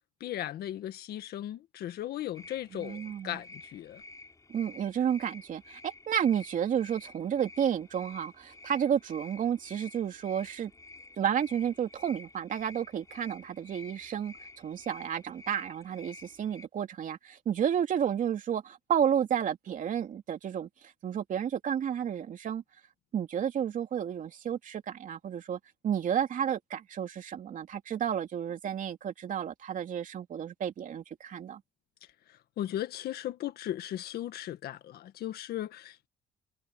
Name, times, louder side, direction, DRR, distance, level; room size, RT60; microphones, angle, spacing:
voice 1, 0.2-4.0 32.3-36.1, left 12 dB, 70° left, 1.8 m, -37 dB
sound 1, 2.3-16.7, left 3 dB, 20° left, 5.8 m, -51 dB
voice 2, 2.7-3.4 4.5-10.7 11.2-20.7 21.0-22.6 23.1-31.6, right 9 dB, 50° right, 2.8 m, -31 dB
cardioid pair, 110°, 17 cm